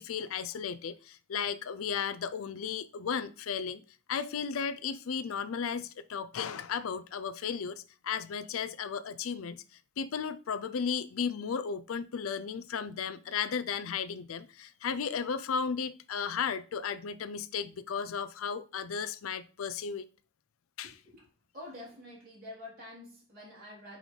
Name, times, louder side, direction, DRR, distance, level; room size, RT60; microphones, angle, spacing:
voice 1, 0.0-3.8 4.1-9.6 10.0-20.1 20.8-20.9, left 6 dB, 80° left, 0.4 m, -35 dB
voice 2, 20.8-21.3 21.5-24.0, left 1 dB, 45° right, 3.6 m, -47 dB
8.6 x 3.9 x 3.2 m
head